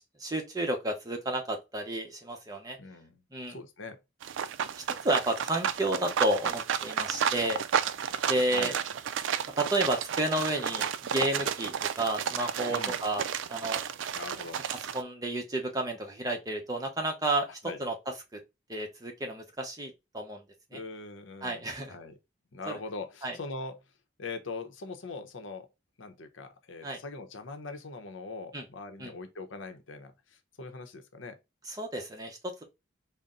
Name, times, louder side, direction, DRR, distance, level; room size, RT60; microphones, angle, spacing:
voice 1, 0.0-2.8 3.3-3.6 4.7-7.6 8.2-8.7 9.6-13.2 13.5-13.8 14.9-17.5 17.8-17.9 18.3-18.4 18.7-20.4 20.7-20.8 21.4-21.9 22.7-22.8 23.2-23.4 26.8-27.0 28.5-28.6 29.0-29.1 31.7-32.6, right 1 dB, 20° right, 0.8 m, -31 dB
voice 2, 2.8-3.2 3.5-4.0 8.5-8.7 12.7-13.0 14.1-14.6 17.6-17.8 20.7-22.1 22.5-23.8 24.2-25.7 26.0-31.4, left 3 dB, 85° left, 0.7 m, -41 dB
sound 1, 4.2-15.0, right 8 dB, 80° right, 0.3 m, -32 dB
4.0 x 2.1 x 3.6 m
head